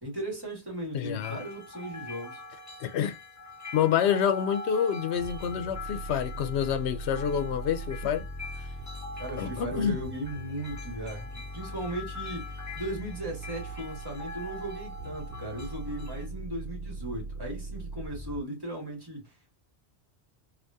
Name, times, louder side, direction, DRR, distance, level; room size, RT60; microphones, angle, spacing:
voice 1, 0.0-2.4 9.2-19.5, right 1 dB, 20° right, 1.7 m, -37 dB
voice 2, 0.9-1.4 2.8-3.2 3.7-8.2 9.4-10.0, left 8 dB, 90° left, 0.8 m, -27 dB
sound 1, 1.2-16.3, left 2 dB, 20° left, 0.8 m, -43 dB
sound 2, 5.1-18.4, right 1 dB, 65° right, 0.8 m, -40 dB
3.5 x 2.4 x 2.6 m
omnidirectional pair, 1.1 m